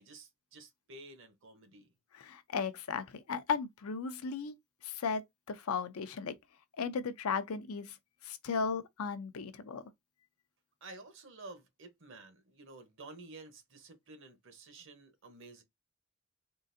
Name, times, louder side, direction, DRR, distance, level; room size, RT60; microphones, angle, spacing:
voice 1, 0.0-1.9 10.8-15.6, right 2 dB, 60° right, 0.9 m, -52 dB
voice 2, 2.1-4.5 4.8-6.3 6.8-8.0 8.2-9.8, left 5 dB, 85° left, 0.5 m, -36 dB
3.8 x 2.4 x 2.6 m
head